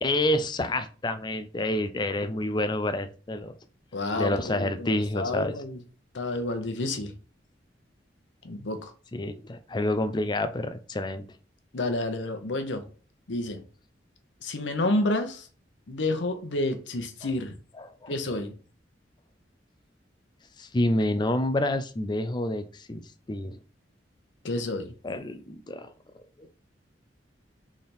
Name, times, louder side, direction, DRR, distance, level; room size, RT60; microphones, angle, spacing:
voice 1, 0.0-3.5 4.2-5.5 9.1-11.2 17.8-18.2 20.6-23.0 23.3-23.6 25.0-25.9 26.4-26.5, left 1 dB, 25° left, 0.4 m, -28 dB
voice 2, 3.9-5.8 6.1-7.1 8.4-8.9 11.7-12.8 13.3-13.6 14.4-15.5 15.9-17.5 18.1-18.5 24.4-24.9, left 2 dB, 85° left, 0.9 m, -29 dB
3.7 x 3.3 x 4.3 m
head